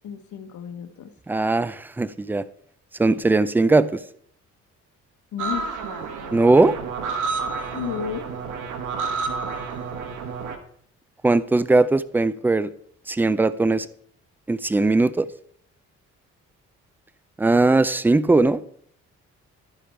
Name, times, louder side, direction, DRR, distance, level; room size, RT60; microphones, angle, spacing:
voice 1, 0.0-1.1 5.3-5.8 7.7-8.3, left 8 dB, 70° left, 8 dB, 1.1 m, -32 dB
voice 2, 1.3-2.5 3.0-4.0 6.3-6.8 11.2-12.7 13.1-13.9 14.5-15.3 17.4-18.6, right 2 dB, 5° right, 16 dB, 0.3 m, -19 dB
sound 1, 5.4-10.6, right 4 dB, 85° right, 1.2 m, -30 dB
11.5 x 5.0 x 4.4 m, 0.64 s
cardioid pair, 90°, 30 cm